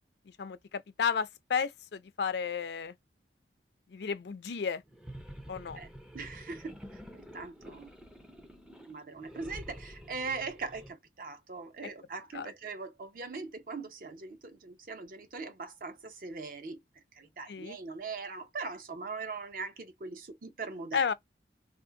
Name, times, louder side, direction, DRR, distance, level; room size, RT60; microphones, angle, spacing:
voice 1, 0.3-3.0 3.9-4.8 5.5-5.8 12.3-12.5 17.5-17.8 20.9-21.1, left 6 dB, 70° left, 0.4 m, -33 dB
sound 1, 4.8-10.9, equal, 5° right, 0.4 m, -48 dB
voice 2, 6.1-6.8 7.1-7.9 8.8-16.8 17.1-21.1, right 4 dB, 50° right, 0.6 m, -41 dB
2.6 x 2.4 x 3.7 m
head